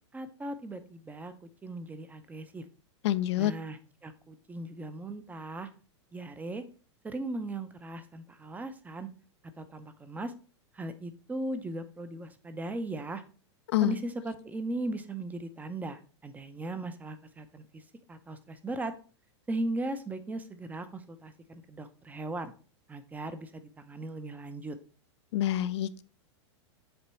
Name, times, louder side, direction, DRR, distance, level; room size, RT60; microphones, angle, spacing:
voice 1, 0.1-2.7 3.4-5.7 6.1-6.6 7.0-9.1 9.6-10.3 10.7-13.2 13.8-17.8 18.1-18.9 19.5-22.5 22.9-24.8, right 2 dB, 10° right, 10 dB, 0.6 m, -38 dB
voice 2, 3.0-3.5 13.7-14.0 25.3-26.0, left 13 dB, 65° left, 14 dB, 0.5 m, -27 dB
7.8 x 3.0 x 4.3 m, 0.39 s
hypercardioid pair, 120°, 15 cm